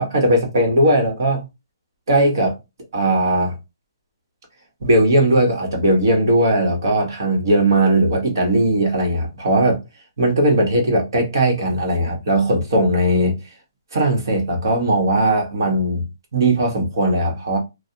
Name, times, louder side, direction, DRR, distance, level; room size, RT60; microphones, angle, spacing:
voice 1, 0.0-1.4 2.1-2.5 2.9-3.5 4.8-9.8 10.2-13.4 13.9-16.1 16.3-17.6, right 1 dB, 60° right, 1.4 m, -18 dB
3.2 x 2.4 x 2.8 m
hypercardioid pair, 170°, 2 cm